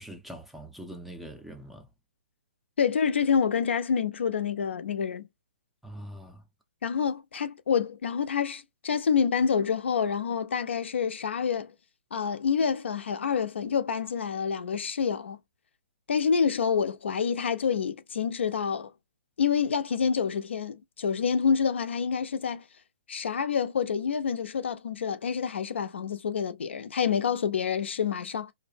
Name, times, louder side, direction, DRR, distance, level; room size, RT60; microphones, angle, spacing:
voice 1, 0.0-1.9 5.8-6.4, right 1 dB, ahead, 0.4 m, -43 dB
voice 2, 2.8-5.2 6.8-11.7 12.1-15.4 16.1-18.9 19.4-22.6 23.1-28.5, left 6 dB, 75° left, 0.5 m, -27 dB
2.6 x 2.0 x 2.5 m
hypercardioid pair, 145°, 6 cm